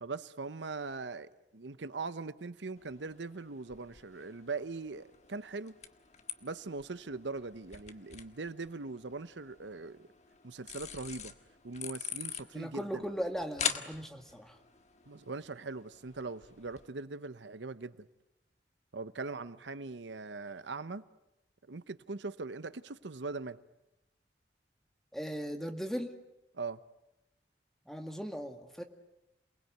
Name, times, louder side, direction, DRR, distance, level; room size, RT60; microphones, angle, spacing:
voice 1, 0.0-5.8 6.4-10.1 10.4-11.3 11.6-13.0 15.1-17.9 18.9-21.0 21.7-23.6 26.5-26.8, right 3 dB, 85° right, 0.9 m, -41 dB
sound 1, 2.8-16.9, left 8 dB, 40° left, 1.5 m, -44 dB
voice 2, 12.5-14.6 25.1-26.1 27.9-28.8, equal, ahead, 2.0 m, -38 dB
28.0 x 20.0 x 9.4 m
head